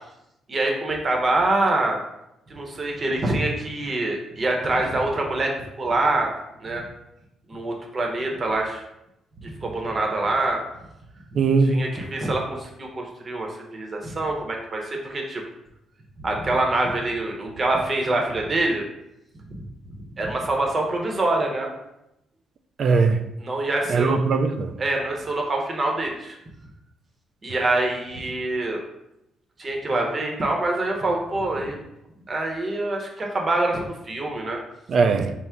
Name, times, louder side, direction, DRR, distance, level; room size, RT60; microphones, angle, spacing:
voice 1, 0.5-2.0 2.5-6.3 6.6-6.9 7.5-8.8 9.4-10.6 11.6-15.4 16.2-18.8 19.5-19.6 20.2-21.7 23.4-24.2 24.8-26.4 27.4-28.8 29.6-31.8 32.3-34.6, right 2 dB, 35° right, 1 dB, 0.8 m, -25 dB
voice 2, 11.4-11.8 22.8-23.2 23.9-24.7 34.9-35.3, right 4 dB, 55° right, 8 dB, 0.3 m, -20 dB
4.4 x 2.0 x 3.5 m, 0.86 s
cardioid pair, 90°, 0 cm